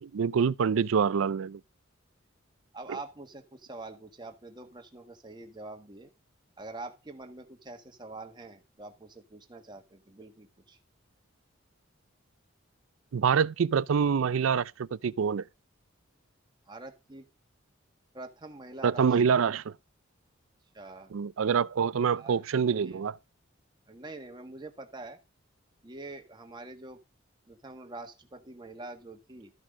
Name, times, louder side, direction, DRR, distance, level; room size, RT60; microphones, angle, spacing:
voice 1, 0.0-1.6 13.1-15.5 18.8-19.7 21.1-23.2, right 6 dB, 80° right, 0.4 m, -26 dB
voice 2, 2.7-6.1 6.6-10.8 16.7-17.2 18.1-19.1 20.7-21.1 21.8-22.4 22.8-23.0 23.9-25.2 25.8-27.0 27.5-29.5, right 2 dB, 20° right, 1.5 m, -45 dB
13.0 x 6.2 x 3.7 m
head